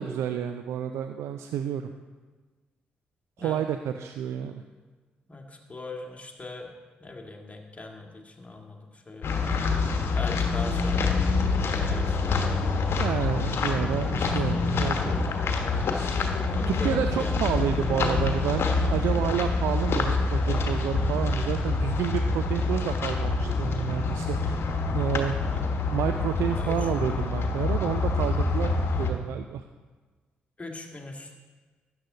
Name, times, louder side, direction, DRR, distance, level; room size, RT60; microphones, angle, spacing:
voice 1, 0.0-1.9 3.4-4.6 13.0-15.2 15.9-16.1 16.7-24.6 24.9-25.3 25.9-28.7 29.0-29.6, right 9 dB, 70° right, 8 dB, 0.4 m, -30 dB
voice 2, 5.3-6.7 7.0-9.6 10.1-11.2 11.5-12.5 14.2-14.7 15.7-16.2 16.5-17.7 25.3-25.8 26.5-27.2 30.6-31.3, left 2 dB, 25° left, 2 dB, 2.1 m, -41 dB
sound 1, 9.2-29.1, left 3 dB, 55° left, 1.2 m, -26 dB
12.5 x 9.5 x 3.9 m, 1.3 s
hypercardioid pair, 40°, 5 cm